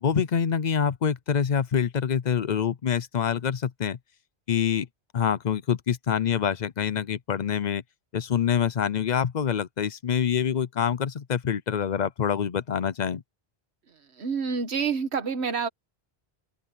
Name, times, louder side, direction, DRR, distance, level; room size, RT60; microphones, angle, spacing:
voice 1, 0.0-4.0 4.5-4.9 5.1-7.8 8.1-13.2, left 8 dB, 50° left, 0.7 m, -26 dB
voice 2, 14.2-15.7, right 5 dB, 85° right, 1.5 m, -27 dB
open air
omnidirectional pair, 1.1 m